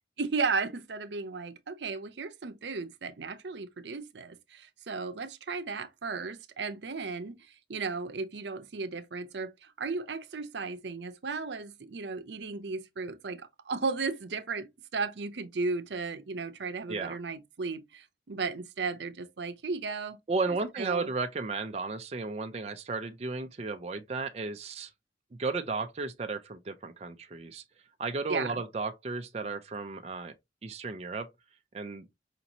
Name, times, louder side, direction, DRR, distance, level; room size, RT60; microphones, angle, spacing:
voice 1, 0.2-20.2 20.5-21.1 28.3-28.6, right 4 dB, 80° right, 0.6 m, -35 dB
voice 2, 20.3-24.9 25.3-27.6 28.0-30.3 30.6-31.3 31.7-32.1, right 3 dB, 35° right, 0.4 m, -34 dB
5.0 x 2.9 x 2.7 m
head